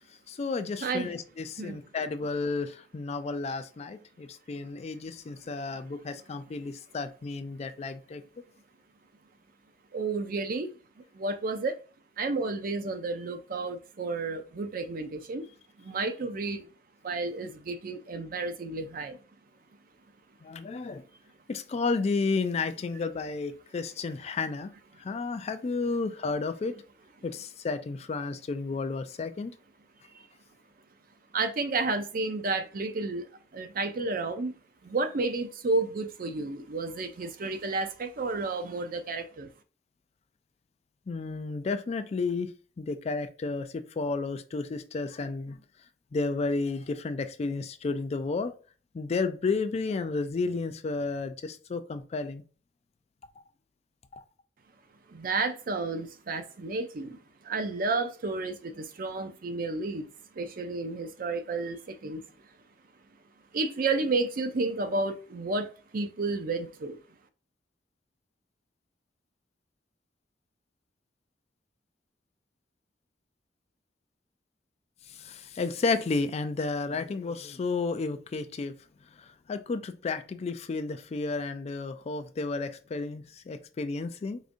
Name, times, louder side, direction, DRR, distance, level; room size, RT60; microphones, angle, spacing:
voice 1, 0.3-8.2 20.4-21.0 21.5-24.7 25.0-26.7 27.2-29.5 41.1-45.6 46.1-48.5 48.9-52.4 54.1-54.2 75.1-78.8 79.1-84.4, left 4 dB, 35° left, 0.3 m, -32 dB
voice 2, 0.8-1.1 1.6-1.8 9.9-10.7 11.1-11.8 12.2-15.5 15.8-16.7 17.0-19.2 31.3-33.3 33.5-34.5 34.8-39.5 55.1-57.2 57.4-60.1 60.4-62.2 63.5-67.0, right 3 dB, 55° right, 0.5 m, -31 dB
4.8 x 2.5 x 2.5 m
head